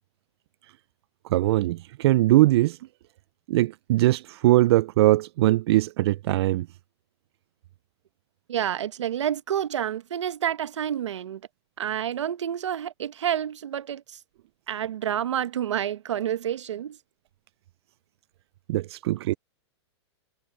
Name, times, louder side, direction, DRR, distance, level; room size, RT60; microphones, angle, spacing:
voice 1, 1.3-2.8 3.5-6.7 18.7-19.3, right 16 dB, 65° right, 0.4 m, -21 dB
voice 2, 8.5-11.4 11.8-14.2 14.7-17.0, right 10 dB, 90° right, 1.2 m, -29 dB
hypercardioid pair, 130°, 15 cm